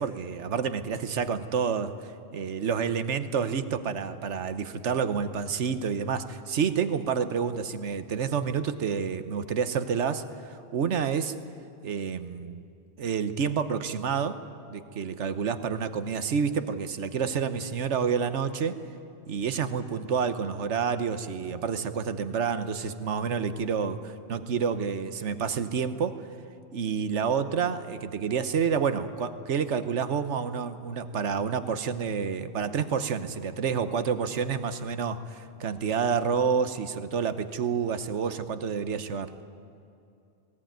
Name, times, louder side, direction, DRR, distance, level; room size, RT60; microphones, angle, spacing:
voice 1, 0.0-1.9 2.3-11.4 11.8-12.6 13.0-14.4 14.7-18.8 19.3-26.3 26.7-39.3, right 6 dB, 80° right, 11 dB, 1.3 m, -29 dB
19.0 x 17.5 x 9.3 m, 2.6 s
omnidirectional pair, 1.2 m